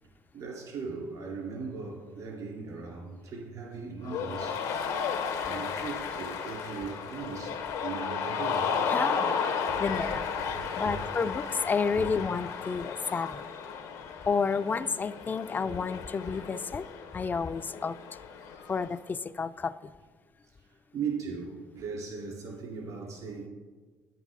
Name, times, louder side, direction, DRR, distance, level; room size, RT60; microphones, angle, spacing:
voice 1, 0.0-4.7 5.4-8.7 9.7-9.8 10.5-11.0 12.0-12.1 18.4-18.5 20.4-23.5, right 5 dB, 70° right, -1 dB, 3.2 m, -39 dB
Cheering, 4.0-18.9, left 6 dB, 85° left, 1.0 m, -34 dB
voice 2, 8.9-9.3 9.8-10.3 10.8-13.5 14.3-16.9 17.1-18.0 18.7-19.9, left 5 dB, 30° left, 13 dB, 0.4 m, -30 dB
9.7 x 9.2 x 3.7 m, 1.4 s
supercardioid pair, 70°, 6 cm